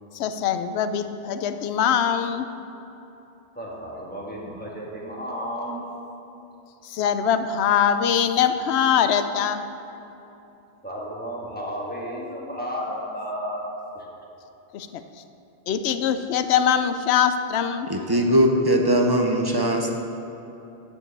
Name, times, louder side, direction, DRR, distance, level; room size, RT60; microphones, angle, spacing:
voice 1, 0.1-2.4 6.8-9.6 14.7-14.9 15.7-17.9, left 8 dB, 80° left, 10 dB, 0.8 m, -22 dB
voice 2, 3.5-5.9 10.8-13.7, equal, 10° left, -4 dB, 1.5 m, -33 dB
voice 3, 17.9-19.9, equal, 30° right, 2 dB, 0.5 m, -20 dB
10.5 x 4.6 x 6.5 m, 3.0 s
omnidirectional pair, 1.1 m